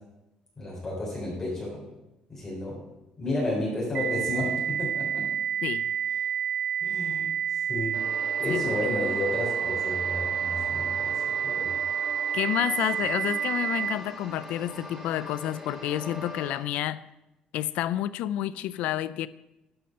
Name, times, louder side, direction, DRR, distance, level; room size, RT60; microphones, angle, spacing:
voice 1, 0.6-1.8 2.3-2.8 3.2-5.3 6.8-8.0 8.4-11.7, left 2 dB, 20° left, 3.6 m, -32 dB
sound 1, 3.9-13.9, right 8 dB, 60° right, 0.5 m, -29 dB
voice 2, 5.6-5.9 8.5-8.6 12.3-17.0 17.5-19.3, left 12 dB, 85° left, 0.4 m, -29 dB
sound 2, 7.9-16.6, equal, 10° right, 2.3 m, -42 dB
12.0 x 5.4 x 5.6 m
cardioid pair, 140°, 2 cm